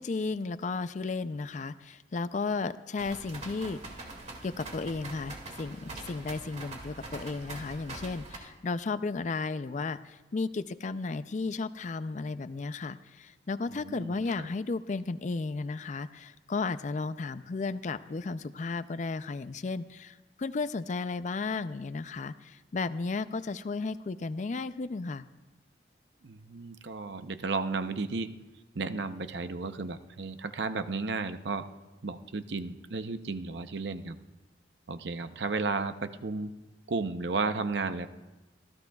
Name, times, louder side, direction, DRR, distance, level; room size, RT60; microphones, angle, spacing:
voice 1, 0.0-3.8 4.4-25.3, left 4 dB, 40° left, 14 dB, 0.4 m, -34 dB
sound 1, 3.0-8.4, right 2 dB, 40° right, 2.1 m, -43 dB
voice 2, 13.8-14.5 26.2-28.3 28.7-31.7 32.0-34.2 34.9-36.5 36.9-38.1, right 3 dB, 70° right, 10 dB, 0.7 m, -33 dB
26.0 x 14.5 x 2.3 m, 1.1 s
head